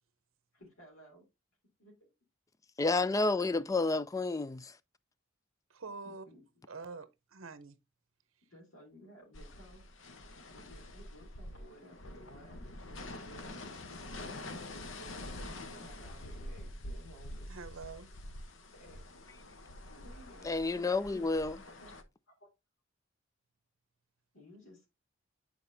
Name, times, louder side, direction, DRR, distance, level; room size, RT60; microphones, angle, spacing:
voice 1, 0.5-1.2 1.8-2.0 6.0-6.4 8.5-10.0 10.5-13.8 14.0-17.5 18.7-19.0 19.9-21.0 21.6-21.9 22.3-22.5 24.3-24.9, equal, 80° left, 3.0 m, -56 dB
voice 2, 2.8-4.7 20.4-21.6, left 3 dB, 15° left, 0.3 m, -30 dB
voice 3, 5.7-6.2 6.7-7.7 17.5-18.1, right 4 dB, 70° right, 0.8 m, -45 dB
sound 1, 9.3-22.0, left 1 dB, 65° left, 0.9 m, -46 dB
8.6 x 4.5 x 2.7 m
head